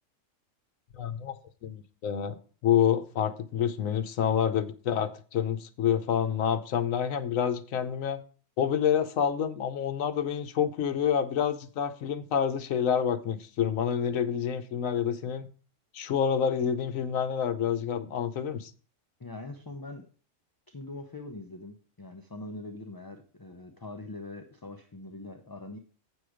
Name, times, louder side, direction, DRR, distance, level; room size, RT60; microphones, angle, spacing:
voice 1, 0.9-1.4 1.6-2.3 2.6-8.2 8.6-15.5 15.9-18.7, left 8 dB, 80° left, 1.2 m, -28 dB
voice 2, 19.2-20.1 20.7-25.8, left 2 dB, 25° left, 0.5 m, -42 dB
8.4 x 6.3 x 4.9 m
omnidirectional pair, 1.4 m